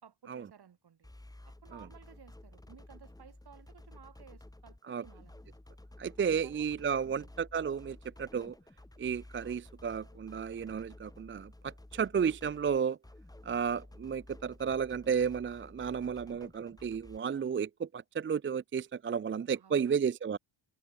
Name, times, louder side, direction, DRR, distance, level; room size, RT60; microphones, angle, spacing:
voice 1, 0.0-1.1 1.4-5.6 6.2-6.8 7.0-7.3 19.5-20.0 20.3-20.4, right 8 dB, 55° right, 3.4 m, -57 dB
sound 1, 1.0-17.2, left 1 dB, 10° left, 2.8 m, -53 dB
voice 2, 6.0-8.5 9.0-13.0 13.4-20.4, right 7 dB, 30° right, 0.4 m, -33 dB
wide cardioid pair, 115°, 45 cm